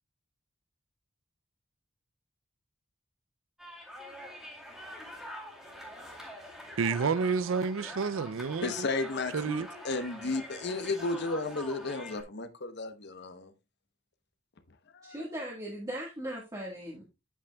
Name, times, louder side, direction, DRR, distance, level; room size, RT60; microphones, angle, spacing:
sound 1, 3.6-12.2, left 1 dB, ahead, 2.3 m, -45 dB
voice 1, 6.8-8.9 9.3-9.7, right 5 dB, 75° right, 0.5 m, -29 dB
voice 2, 8.6-13.5 14.9-15.2, left 3 dB, 60° left, 0.9 m, -33 dB
voice 3, 15.0-17.0, right 1 dB, 20° right, 1.6 m, -38 dB
8.7 x 8.3 x 2.3 m
head